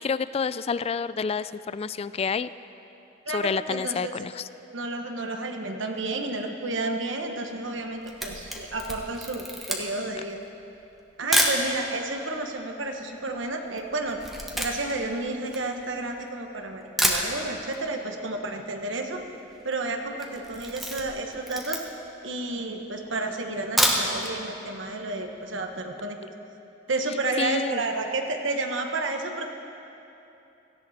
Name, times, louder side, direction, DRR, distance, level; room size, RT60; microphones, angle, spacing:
voice 1, 0.0-2.5 3.3-4.5 27.4-27.8, left 5 dB, 30° left, 16 dB, 0.3 m, -29 dB
voice 2, 3.3-4.1 4.7-10.4 11.2-14.2 14.5-19.2 19.6-21.8 22.2-26.2 26.9-29.5, right 2 dB, 75° right, 4 dB, 1.3 m, -31 dB
Camera, 7.8-11.7 12.3-12.4 12.6-16.3 16.7-16.8 17.0-17.8 18.1-18.2 18.5-18.6 18.8-19.2 19.5-19.8 20.1-22.1 22.7-22.8 23.6-24.3 24.7-24.8 25.2-25.3, equal, ahead, 1.4 m, -28 dB
17.5 x 15.5 x 4.3 m, 2.9 s
head